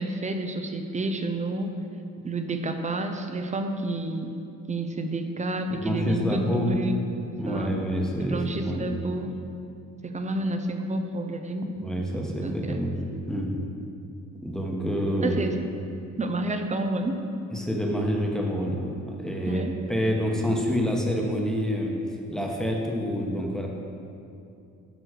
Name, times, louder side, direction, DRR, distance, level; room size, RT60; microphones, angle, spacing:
voice 1, 0.0-1.7 2.2-4.4 4.7-7.7 8.2-9.3 10.0-11.8 12.4-12.9 15.2-15.7 16.2-17.2 19.5-19.7, right 2 dB, 25° right, 6 dB, 0.6 m, -30 dB
voice 2, 5.7-6.7 7.4-8.9 11.8-12.9 13.3-13.5 14.4-15.4 17.5-19.6 19.9-21.9 22.3-23.7, equal, ahead, -1 dB, 1.2 m, -27 dB
9.0 x 3.1 x 6.6 m, 2.6 s
cardioid pair, 90°, 30 cm